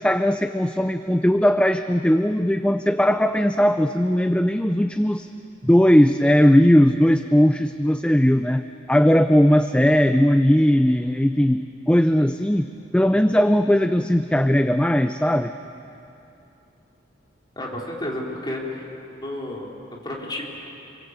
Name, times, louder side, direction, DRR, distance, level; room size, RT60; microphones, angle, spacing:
voice 1, 0.0-5.3 5.6-15.5, equal, 5° left, 9 dB, 0.5 m, -18 dB
voice 2, 17.6-18.9 19.2-20.5, left 1 dB, 25° left, -2 dB, 4.0 m, -31 dB
28.0 x 23.0 x 8.1 m, 2.8 s
head